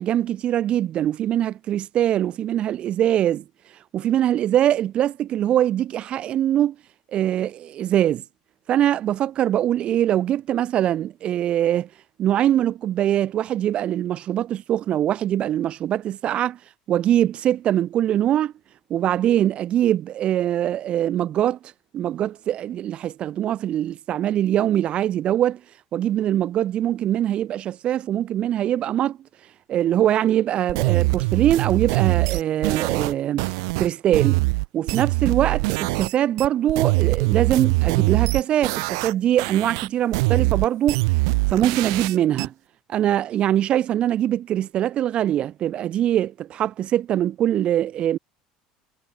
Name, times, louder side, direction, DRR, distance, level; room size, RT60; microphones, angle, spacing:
voice 1, 0.0-3.4 3.9-6.7 7.1-8.2 8.7-11.9 12.2-16.6 16.9-18.5 18.9-21.6 21.9-25.6 25.9-29.2 29.7-33.5 33.8-34.4 34.7-41.0 41.5-42.5 42.9-48.2, right 11 dB, 45° right, 4.7 m, -22 dB
sound 1, 30.7-36.1 36.4-39.1 39.4-42.5, right 27 dB, 85° right, 6.9 m, -23 dB
supercardioid pair, 120°, 3 cm